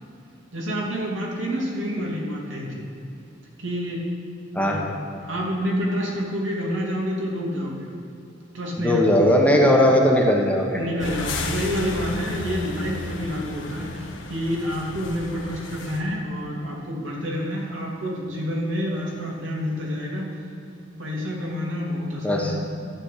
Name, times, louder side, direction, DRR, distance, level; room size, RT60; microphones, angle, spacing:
voice 1, 0.5-2.9 3.6-4.1 4.6-7.9 8.5-9.5 10.7-20.3 21.0-22.6, equal, 80° right, -3 dB, 2.7 m, -28 dB
voice 2, 8.8-10.8 22.2-22.5, left 1 dB, 5° left, 0 dB, 1.1 m, -18 dB
sound 1, 11.0-16.0, left 2 dB, 75° left, 1.4 m, -33 dB
12.0 x 6.2 x 8.3 m, 2.7 s
head